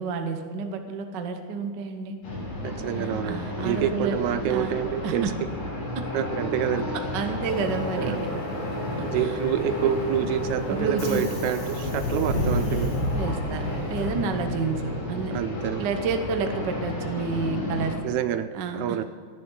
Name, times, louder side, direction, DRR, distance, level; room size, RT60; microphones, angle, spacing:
voice 1, 0.0-2.1 3.0-4.2 4.5-4.7 5.0-5.3 5.9-6.0 6.9-8.1 9.2-9.3 10.7-11.2 13.1-15.4 15.8-18.0 18.5-19.0, right 4 dB, 60° right, 6 dB, 1.1 m, -30 dB
sound 1, 2.2-17.9, left 1 dB, 80° left, 5.8 m, -32 dB
voice 2, 2.6-3.4 3.6-5.2 6.1-6.9 8.0-8.4 9.0-12.9 15.3-15.9 18.0-18.5 18.8-19.0, right 10 dB, 80° right, 12 dB, 1.8 m, -27 dB
Subway metro underground, 7.4-14.9, left 1 dB, 50° left, 4.6 m, -32 dB
18.0 x 11.0 x 3.9 m, 2.1 s
omnidirectional pair, 3.5 m